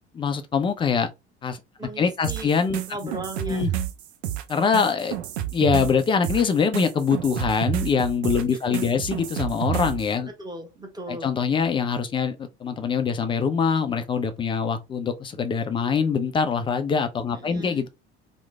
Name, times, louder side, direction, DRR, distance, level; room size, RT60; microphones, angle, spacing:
voice 1, 0.2-1.1 1.4-1.6 2.0-2.8 3.4-3.7 4.5-5.2 5.5-10.3 11.1-17.9, left 6 dB, 15° left, 0.3 m, -24 dB
voice 2, 1.8-2.5 2.9-3.8 8.5-9.1 10.3-11.3 17.3-17.9, right 2 dB, 10° right, 1.0 m, -38 dB
sound 1, 2.2-10.1, right 11 dB, 65° right, 0.5 m, -30 dB
3.1 x 2.1 x 3.3 m
figure-of-eight pair, 60°, 35 cm